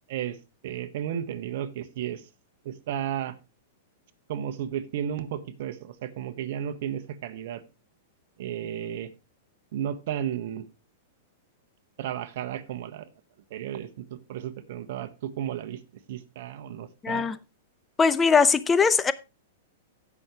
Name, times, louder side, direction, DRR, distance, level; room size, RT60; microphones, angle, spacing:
voice 1, 0.6-2.2 2.6-3.3 4.3-7.6 8.4-9.1 9.7-10.7 12.0-13.1 13.5-15.8 16.1-17.3, right 10 dB, 60° right, 1.3 m, -33 dB
voice 2, 17.0-17.4 18.0-19.1, left 5 dB, 15° left, 0.7 m, -20 dB
16.0 x 6.2 x 3.0 m
hypercardioid pair, 120°, 0 cm